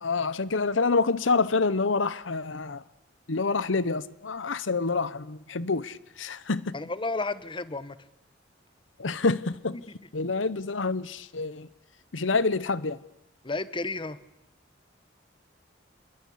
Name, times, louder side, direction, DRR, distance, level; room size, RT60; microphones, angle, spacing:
voice 1, 0.0-2.8 3.3-6.8 9.0-9.8 10.1-11.7 12.1-13.0, left 4 dB, 85° left, 1.0 m, -27 dB
voice 2, 6.7-8.0 9.7-9.8 13.4-14.2, left 3 dB, 25° left, 1.1 m, -32 dB
28.0 x 22.0 x 8.6 m
head